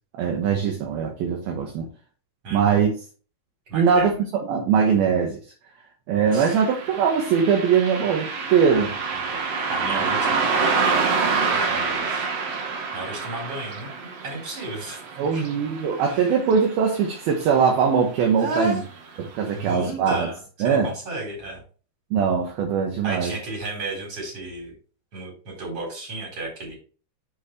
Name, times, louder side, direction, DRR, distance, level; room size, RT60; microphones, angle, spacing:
voice 1, 0.1-1.9 2.5-2.9 3.7-4.1 4.5-5.4 6.1-9.0 9.9-10.1 15.2-18.8 19.2-20.3 20.6-20.9 22.1-23.3, right 6 dB, 65° right, 2.7 m, -21 dB
voice 2, 2.4-2.8 3.7-4.2 6.3-6.5 8.7-9.4 9.7-12.3 12.7-15.0 15.3-15.5 16.0-16.4 18.4-18.8 19.5-21.6 23.0-24.7 25.1-26.8, right 2 dB, 30° right, 4.5 m, -33 dB
Car passing by, 6.3-17.1 17.4-17.5 18.4-18.6 19.1-19.2 19.7-19.8, right 5 dB, 85° right, 1.4 m, -27 dB
7.7 x 6.4 x 3.3 m
omnidirectional pair, 5.5 m